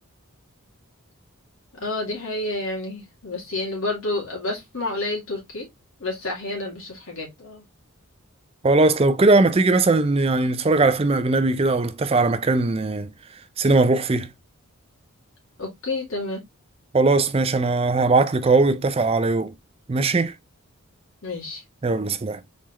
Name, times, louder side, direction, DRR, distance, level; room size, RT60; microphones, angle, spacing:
voice 1, 1.7-5.7 6.0-7.6 15.6-16.4 21.2-21.6, left 2 dB, 65° left, 2.5 m, -29 dB
voice 2, 8.6-13.1 13.6-14.3 16.9-19.5 19.9-20.3 21.8-22.4, right 3 dB, 25° right, 0.4 m, -19 dB
4.3 x 4.1 x 3.0 m
head